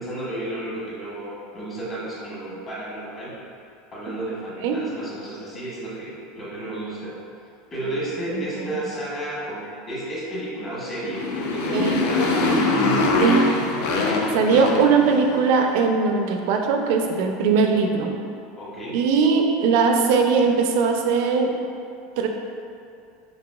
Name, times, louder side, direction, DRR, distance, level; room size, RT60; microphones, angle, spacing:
voice 1, 0.0-3.4 3.9-7.2 7.7-13.5 18.6-19.0, right 1 dB, 30° left, -8 dB, 1.2 m, -32 dB
Motorcycle, 10.9-15.5, left 2 dB, 75° left, 0.4 m, -23 dB
voice 2, 14.3-18.1 18.9-21.6 22.2-22.3, right 5 dB, 65° right, 3 dB, 0.3 m, -20 dB
4.0 x 2.7 x 2.3 m, 2.4 s
supercardioid pair, 130°, 0 cm